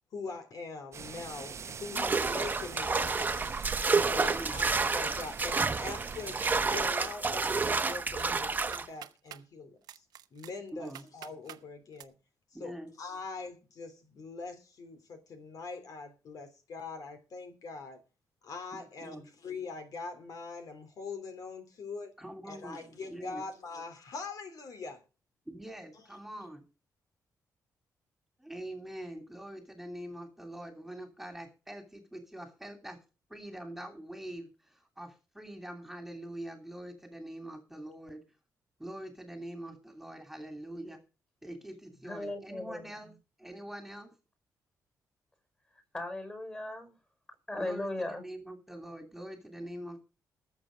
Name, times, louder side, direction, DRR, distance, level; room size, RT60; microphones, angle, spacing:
voice 1, 0.1-3.6 4.0-6.4 6.7-10.0 10.3-12.1 12.6-18.0 18.4-22.1 22.4-25.0, left 4 dB, 65° left, 3.2 m, -43 dB
sound 1, 0.9-7.0, right 6 dB, 45° right, 0.8 m, -43 dB
sound 2, 2.0-8.9, right 4 dB, 25° right, 1.0 m, -30 dB
voice 2, 4.2-4.7 10.7-11.0 12.5-12.9 19.0-19.3 22.2-23.4 25.5-26.6 28.4-33.0 33.3-38.2 38.8-41.0 41.4-43.1 43.4-44.2 47.5-50.0, right 1 dB, 5° right, 2.8 m, -44 dB
sound 3, 4.2-4.8 5.2-5.6 5.9-6.0 6.3-7.1 7.6-9.4 9.8-11.6 12.0-12.1, right 11 dB, 85° right, 0.9 m, -48 dB
voice 3, 42.0-43.0 45.9-46.9 47.5-48.2, left 1 dB, 20° left, 5.7 m, -37 dB
19.0 x 7.4 x 5.2 m
cardioid pair, 105°, 7 cm